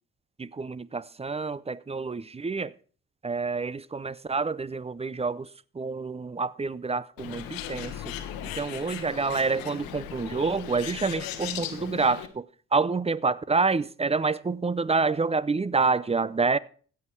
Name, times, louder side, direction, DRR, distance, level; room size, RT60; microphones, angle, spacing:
voice 1, 0.4-2.7 3.2-5.5 5.8-8.1 8.6-12.5 12.7-16.6, right 4 dB, 20° right, 0.5 m, -27 dB
Bird, 7.2-12.3, left 10 dB, 85° left, 1.0 m, -37 dB
16.0 x 5.7 x 4.6 m
hypercardioid pair, 45°, 34 cm